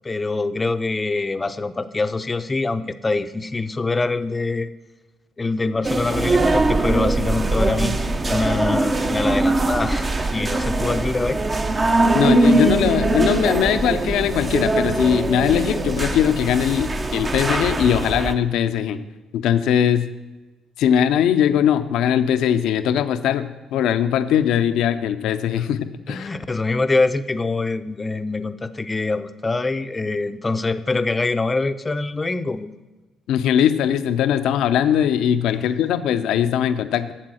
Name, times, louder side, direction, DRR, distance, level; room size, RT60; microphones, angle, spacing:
voice 1, 0.0-4.7 5.4-11.4 26.1-32.7, left 3 dB, 25° left, 11 dB, 0.6 m, -24 dB
sound 1, 5.8-18.3, right 2 dB, 30° right, 0.8 m, -21 dB
voice 2, 12.1-19.0 19.3-20.1 20.8-25.8 26.1-26.3 33.3-37.1, left 9 dB, 75° left, 11 dB, 0.6 m, -20 dB
8.6 x 7.4 x 6.2 m, 1.1 s
supercardioid pair, 65°, 0 cm